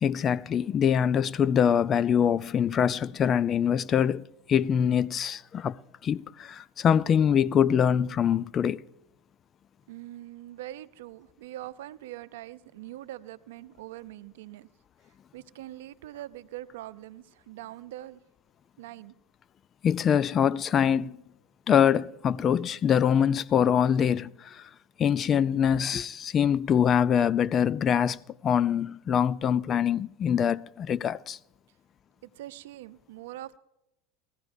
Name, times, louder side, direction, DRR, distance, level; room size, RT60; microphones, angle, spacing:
voice 1, 0.0-8.8 19.8-21.2 21.7-24.7 25.0-31.4, left 8 dB, 35° left, 0.4 m, -24 dB
voice 2, 9.9-14.7 15.3-18.2 18.8-19.1 32.2-33.6, right 14 dB, 80° right, 0.6 m, -43 dB
21.5 x 15.0 x 2.7 m
hypercardioid pair, 100°, 0 cm